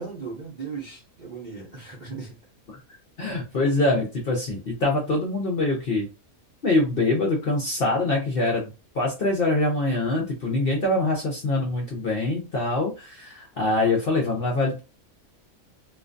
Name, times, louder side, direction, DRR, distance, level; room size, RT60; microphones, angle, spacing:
voice 1, 0.0-2.4, right 5 dB, 45° right, -4 dB, 0.6 m, -37 dB
voice 2, 3.2-6.1 6.6-14.8, left 2 dB, 55° left, 0 dB, 0.6 m, -24 dB
2.5 x 2.2 x 2.4 m, 0.30 s
omnidirectional pair, 1.5 m